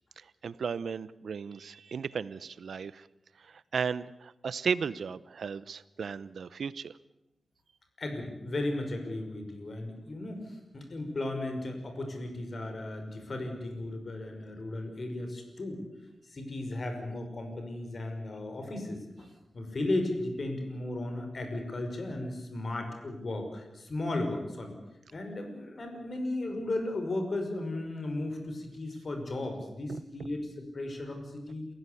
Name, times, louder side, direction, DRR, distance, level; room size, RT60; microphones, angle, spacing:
voice 1, 0.2-3.1 3.4-6.9 29.9-30.3, right 6 dB, 80° right, 17 dB, 0.8 m, -35 dB
voice 2, 8.0-15.8 16.3-19.3 19.5-24.7 25.1-31.7, left 2 dB, 50° left, 5 dB, 6.0 m, -35 dB
29.0 x 16.0 x 8.5 m, 0.94 s
wide cardioid pair, 85°, 0 cm